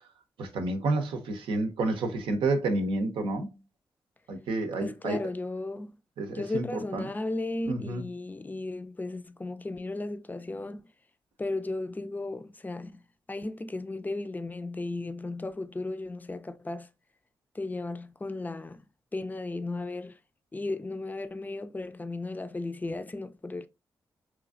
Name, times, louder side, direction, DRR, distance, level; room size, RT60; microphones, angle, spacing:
voice 1, 0.4-3.5 4.3-5.2 6.2-6.6 6.9-7.0 7.7-8.0, right 2 dB, 85° right, 0.6 m, -29 dB
voice 2, 4.7-6.0 6.3-10.9 11.4-13.0 13.3-16.9 17.5-18.9 19.1-20.2 20.5-23.7, left 2 dB, 20° left, 0.4 m, -35 dB
3.1 x 2.4 x 2.4 m
cardioid pair, 55°, 9 cm